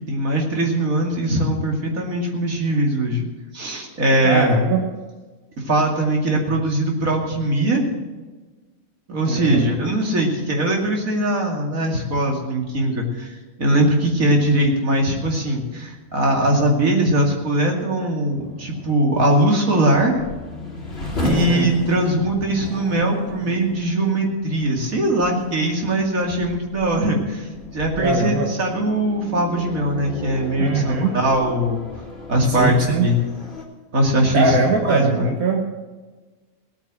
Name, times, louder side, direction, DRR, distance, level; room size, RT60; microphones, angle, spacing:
voice 1, 0.1-3.2 3.5-4.6 5.6-7.8 9.1-13.3 13.6-20.2 21.2-27.5 27.7-31.8 32.3-33.2 33.9-34.6 34.9-35.3, right 1 dB, 70° right, 1 dB, 2.9 m, -21 dB
voice 2, 4.2-4.8 9.2-9.7 21.2-21.7 28.0-28.5 30.6-31.1 32.5-33.1 34.3-35.6, right 4 dB, 90° right, 1 dB, 1.8 m, -21 dB
sound 1, 17.7-33.6, left 2 dB, 45° left, 2.9 m, -34 dB
17.5 x 9.1 x 6.3 m, 1.3 s
omnidirectional pair, 1.5 m